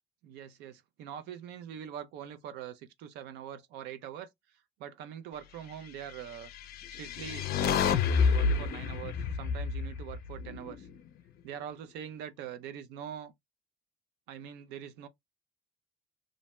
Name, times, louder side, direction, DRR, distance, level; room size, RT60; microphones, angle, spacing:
voice 1, 0.2-6.5 6.9-10.9 11.4-13.3 14.3-15.1, right 9 dB, 90° right, 0.4 m, -43 dB
sound 1, 6.5-10.9, left 5 dB, 65° left, 0.4 m, -29 dB
2.5 x 2.1 x 3.0 m
cardioid pair, 110°, 17 cm